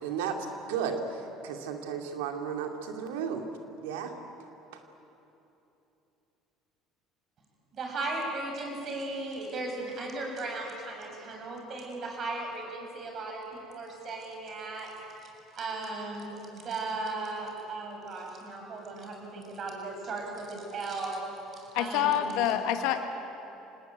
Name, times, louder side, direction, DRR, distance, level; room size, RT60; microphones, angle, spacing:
voice 1, 0.0-3.5 3.8-4.1 4.7-4.8, right 7 dB, 80° right, 4 dB, 2.6 m, -34 dB
voice 2, 7.7-14.9 15.2-22.5, right 2 dB, 45° right, 1 dB, 7.5 m, -37 dB
voice 3, 21.7-23.0, left 10 dB, 70° left, 7 dB, 1.7 m, -27 dB
26.5 x 19.0 x 9.5 m, 3.0 s
hypercardioid pair, 75°, 0 cm